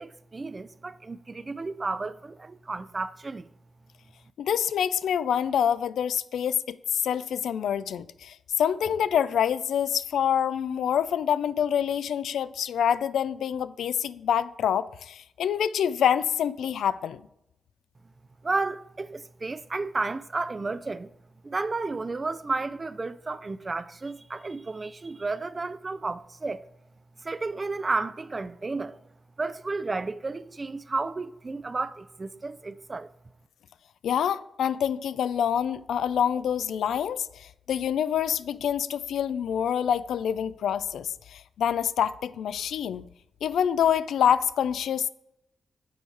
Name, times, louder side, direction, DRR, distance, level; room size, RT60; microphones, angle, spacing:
voice 1, 0.0-3.5 18.4-21.1 21.4-26.6 27.2-29.0 29.4-33.1, right 3 dB, 35° right, 0.4 m, -32 dB
voice 2, 4.4-17.2 34.0-43.0 43.4-45.1, left 9 dB, 85° left, 0.3 m, -26 dB
7.9 x 4.7 x 4.6 m
cardioid pair, 65°, 0 cm